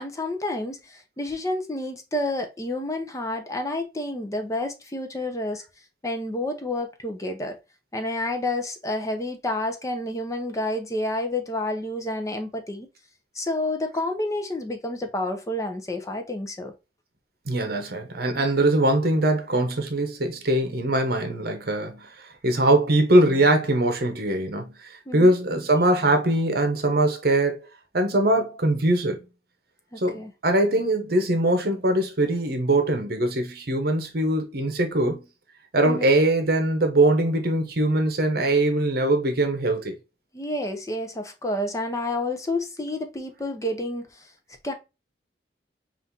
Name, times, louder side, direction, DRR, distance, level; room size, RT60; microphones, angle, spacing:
voice 1, 0.0-5.6 6.0-7.6 7.9-12.9 13.3-16.7 25.1-25.3 30.1-30.3 35.8-36.1 40.3-44.3 44.6-44.7, left 1 dB, 20° left, 0.6 m, -29 dB
voice 2, 17.5-24.7 25.1-27.7 27.9-29.2 30.0-35.2 35.7-40.0, right 1 dB, 55° right, 1.0 m, -22 dB
5.4 x 2.6 x 2.7 m
head